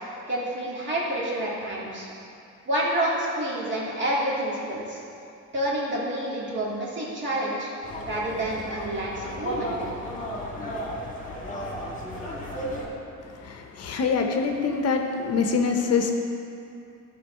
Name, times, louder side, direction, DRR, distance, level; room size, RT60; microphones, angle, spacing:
voice 1, 0.3-2.1 2.7-5.0 5.5-7.7 8.0-9.7, right 1 dB, 35° right, -6 dB, 2.1 m, -28 dB
sound 1, 7.8-12.9, equal, 25° left, 1.6 m, -34 dB
voice 2, 13.4-16.1, left 5 dB, 55° left, 4 dB, 0.7 m, -25 dB
11.5 x 3.9 x 5.5 m, 2.6 s
cardioid pair, 130°, 31 cm